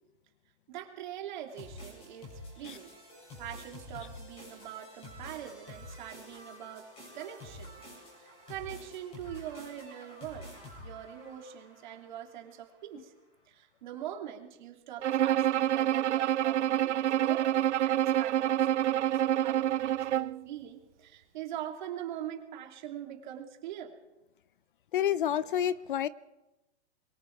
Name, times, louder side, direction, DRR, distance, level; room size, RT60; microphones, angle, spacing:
voice 1, 0.7-2.9 3.4-7.9 8.1-13.1 13.5-23.9, right 11 dB, 45° right, 3 dB, 3.1 m, -43 dB
sound 1, 1.5-12.6, left 1 dB, 15° left, 7.4 m, -49 dB
Bowed string instrument, 15.0-20.4, right 12 dB, 90° right, 0.6 m, -27 dB
voice 2, 24.9-26.1, left 10 dB, 50° left, 18 dB, 0.6 m, -29 dB
25.0 x 23.0 x 4.7 m, 1.0 s
hypercardioid pair, 170°, 34 cm